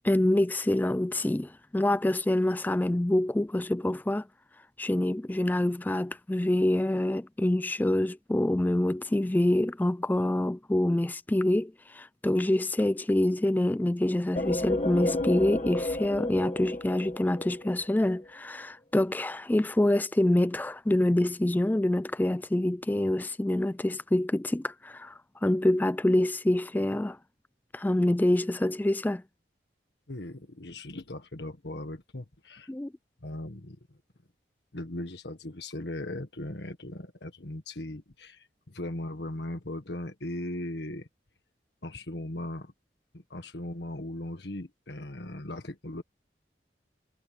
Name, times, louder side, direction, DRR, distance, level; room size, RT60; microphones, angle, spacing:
voice 1, 0.0-4.2 4.8-27.2 27.7-29.2 32.7-32.9, left 1 dB, 10° left, 0.3 m, -26 dB
sound 1, 14.4-18.0, left 1 dB, 35° left, 1.7 m, -31 dB
voice 2, 30.1-32.7 33.2-34.0 34.7-41.1 41.8-42.7 43.1-46.0, left 1 dB, 70° left, 1.7 m, -38 dB
head